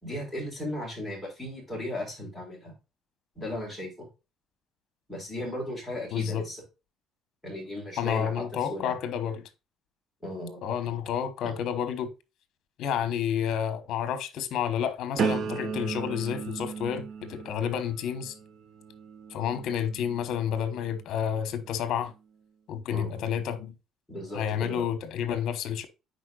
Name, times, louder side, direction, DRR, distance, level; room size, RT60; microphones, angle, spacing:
voice 1, 0.0-2.7 3.4-4.1 5.1-6.6 7.4-9.0 10.2-10.6 11.4-11.5 22.9-23.2 24.1-24.9, left 1 dB, 5° left, 4.2 m, -36 dB
voice 2, 6.1-6.4 8.0-9.5 10.6-12.1 12.8-18.3 19.3-22.1 22.7-23.7 24.3-25.9, left 8 dB, 60° left, 1.1 m, -30 dB
sound 1, 15.2-21.0 21.6-22.0, right 6 dB, 45° right, 0.9 m, -36 dB
9.6 x 4.4 x 2.4 m
cardioid pair, 145°, 0 cm